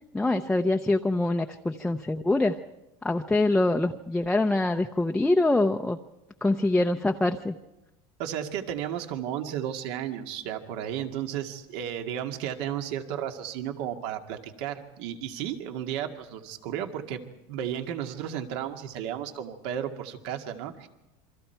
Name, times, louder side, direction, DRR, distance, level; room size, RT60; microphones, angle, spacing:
voice 1, 0.1-2.6 3.0-6.0 6.4-7.5, left 2 dB, 5° left, 3 dB, 0.7 m, -24 dB
voice 2, 8.2-20.9, right 10 dB, 70° right, 5 dB, 2.1 m, -33 dB
28.0 x 24.0 x 4.6 m, 0.99 s
supercardioid pair, 140°, 14 cm